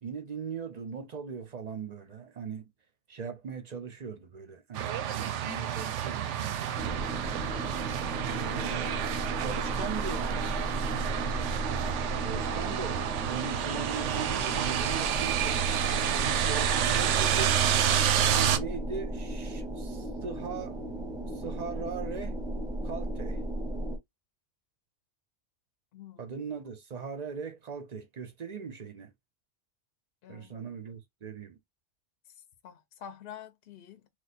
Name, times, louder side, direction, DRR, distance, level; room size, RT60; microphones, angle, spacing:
voice 1, 0.0-2.7 3.1-7.1 8.3-9.0 9.4-10.5 12.2-17.6 18.3-20.8 21.3-22.4 22.8-23.4 26.2-29.1 30.3-31.6, right 6 dB, 45° right, 0.6 m, -39 dB
sound 1, 4.7-18.6, right 10 dB, 90° right, 0.9 m, -29 dB
sound 2, 6.8-24.0, right 1 dB, 5° right, 0.7 m, -35 dB
voice 2, 7.3-7.6 25.9-26.3 30.2-30.7 32.6-34.1, left 9 dB, 60° left, 0.8 m, -48 dB
3.1 x 2.3 x 4.1 m
omnidirectional pair, 1.2 m